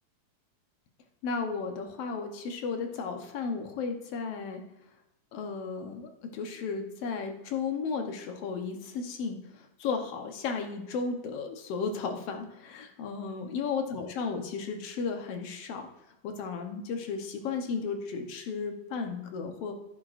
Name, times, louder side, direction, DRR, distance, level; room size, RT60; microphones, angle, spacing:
voice 1, 1.2-4.6 5.3-15.9 16.2-19.7, left 5 dB, 65° left, 4 dB, 1.8 m, -34 dB
11.0 x 10.0 x 2.5 m, 0.89 s
omnidirectional pair, 3.5 m